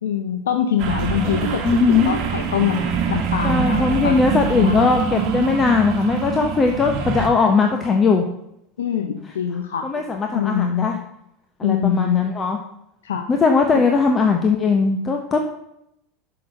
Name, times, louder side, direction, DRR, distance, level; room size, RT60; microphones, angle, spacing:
voice 1, 0.0-4.2 4.5-5.0 8.8-9.9 10.3-10.9 11.6-12.2 13.0-13.3 13.7-13.8, left 9 dB, 80° left, 6 dB, 0.6 m, -24 dB
sound 1, 0.8-7.3, right 6 dB, 55° right, 1.2 m, -24 dB
voice 2, 1.6-2.2 3.4-8.2 9.8-11.0 11.6-12.6 13.3-15.4, left 4 dB, 25° left, 3 dB, 0.9 m, -19 dB
6.0 x 5.9 x 6.3 m, 0.79 s
hypercardioid pair, 85°, 0 cm